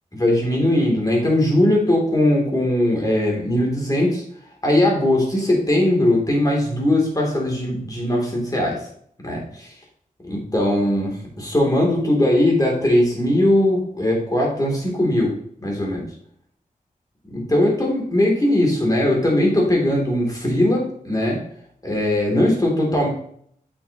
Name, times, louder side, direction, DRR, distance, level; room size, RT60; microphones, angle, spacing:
voice 1, 0.1-4.2 4.6-8.8 9.2-9.7 10.2-15.3 15.6-16.1 17.2-21.4 21.8-23.1, left 1 dB, 25° left, -1 dB, 3.2 m, -19 dB
8.7 x 6.5 x 3.1 m, 0.65 s
wide cardioid pair, 100°, 15 cm